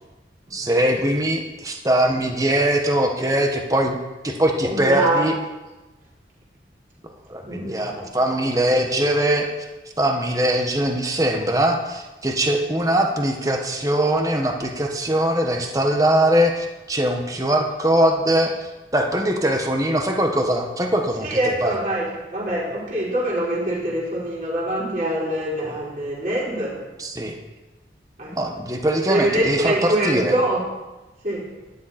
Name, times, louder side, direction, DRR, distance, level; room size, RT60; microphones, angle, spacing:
voice 1, 0.5-4.0 4.2-5.3 7.3-9.5 10.0-21.7 27.0-27.3 28.3-30.3, right 1 dB, 20° right, 2 dB, 1.4 m, -21 dB
voice 2, 4.6-5.2 7.4-8.4 21.2-26.8 28.2-28.3 29.1-30.6 31.2-31.4, right 1 dB, 45° right, -6 dB, 4.8 m, -24 dB
12.5 x 12.0 x 4.4 m, 1.1 s
head